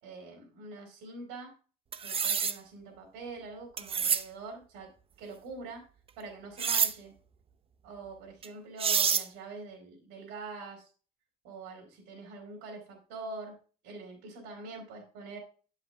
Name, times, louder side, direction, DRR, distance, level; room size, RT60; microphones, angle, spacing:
voice 1, 0.0-1.5 2.0-4.9 5.2-5.8 6.2-7.1 7.8-10.9 11.4-13.6 13.8-15.4, right 3 dB, 90° right, 0 dB, 2.9 m, -44 dB
sound 1, 1.9-2.6 3.8-4.2 6.6-6.9 8.4-8.5 8.8-9.3, right 7 dB, 35° right, 0.7 m, -27 dB
9.1 x 5.7 x 3.5 m, 0.36 s
cardioid pair, 110°, 17 cm